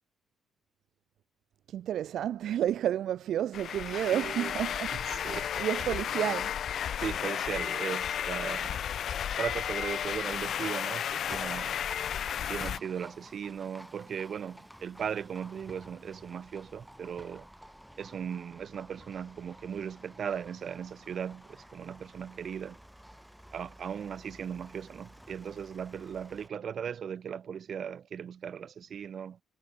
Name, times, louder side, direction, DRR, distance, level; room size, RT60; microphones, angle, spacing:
voice 1, 1.7-5.3 5.6-6.5, right 11 dB, 70° right, 2.9 m, -31 dB
sound 1, 3.5-12.8, left 9 dB, 65° left, 2.1 m, -33 dB
voice 2, 4.1-4.5 4.9-5.7 7.0-8.9 9.4-11.8 12.4-17.5 18.0-22.8 23.5-29.4, right 8 dB, 55° right, 7.8 m, -38 dB
Livestock farm animals working animals, 11.2-26.5, equal, 5° right, 6.1 m, -52 dB
cardioid pair, 90°, 0 cm